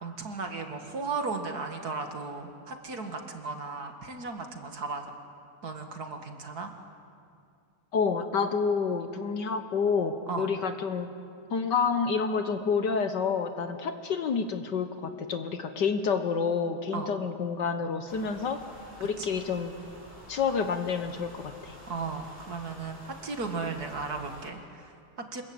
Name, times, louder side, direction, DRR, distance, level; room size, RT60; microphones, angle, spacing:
voice 1, 0.0-5.1 5.6-6.7 10.3-10.5 16.9-17.1 19.0-19.3 21.9-25.4, right 4 dB, 45° right, 5 dB, 2.3 m, -36 dB
voice 2, 7.9-11.1 11.5-18.6 19.0-19.8 20.3-21.7, left 5 dB, 60° left, 8 dB, 1.6 m, -29 dB
sound 1, 18.1-24.5, equal, 15° right, 5.9 m, -49 dB
26.0 x 22.0 x 8.8 m, 2.4 s
omnidirectional pair, 2.3 m